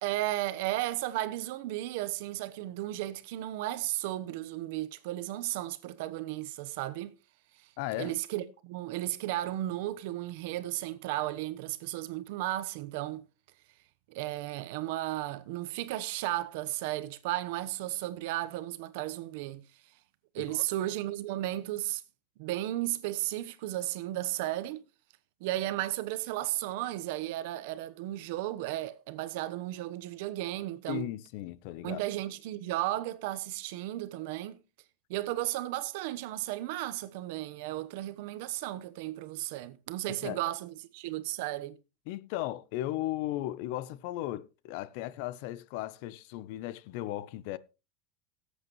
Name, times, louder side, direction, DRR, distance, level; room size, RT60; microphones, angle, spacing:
voice 1, 0.0-7.1 8.0-13.2 14.1-19.6 20.3-22.0 22.4-24.8 25.4-31.1 31.8-34.6 35.1-41.8, right 15 dB, 70° right, 0.9 m, -34 dB
voice 2, 7.8-8.1 20.4-20.6 30.9-32.0 40.1-40.4 42.1-47.6, left 15 dB, 60° left, 0.6 m, -36 dB
17.5 x 8.2 x 3.0 m
supercardioid pair, 150°, 0 cm